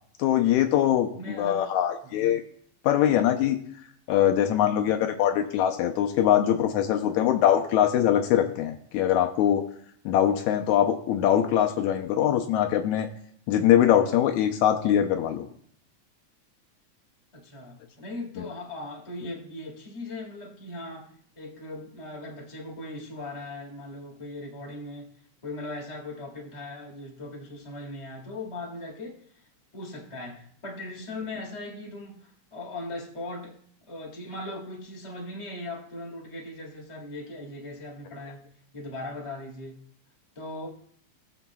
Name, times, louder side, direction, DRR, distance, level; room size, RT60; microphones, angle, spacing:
voice 1, 0.2-2.4 2.8-3.6 4.1-9.6 10.1-13.1 13.5-15.5, left 10 dB, 80° left, 5 dB, 2.0 m, -22 dB
voice 2, 1.1-1.7 2.0-2.2 17.3-25.1 25.4-29.2 29.7-33.5 33.9-38.4 38.7-39.8 40.3-40.7, left 2 dB, 15° left, -2 dB, 1.4 m, -39 dB
20.0 x 7.1 x 2.3 m, 0.63 s
omnidirectional pair, 3.4 m